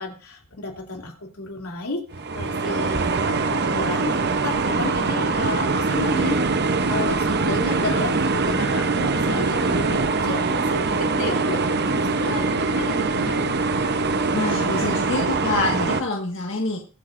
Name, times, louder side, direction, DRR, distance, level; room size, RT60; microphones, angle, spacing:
voice 1, 0.0-13.5, left 2 dB, 80° left, 1 dB, 3.0 m, -33 dB
sound 1, 2.1-16.0, right 3 dB, 50° right, 0.9 m, -23 dB
voice 2, 14.3-16.8, left 2 dB, 60° left, 0 dB, 1.8 m, -26 dB
23.0 x 8.4 x 2.6 m, 0.37 s
head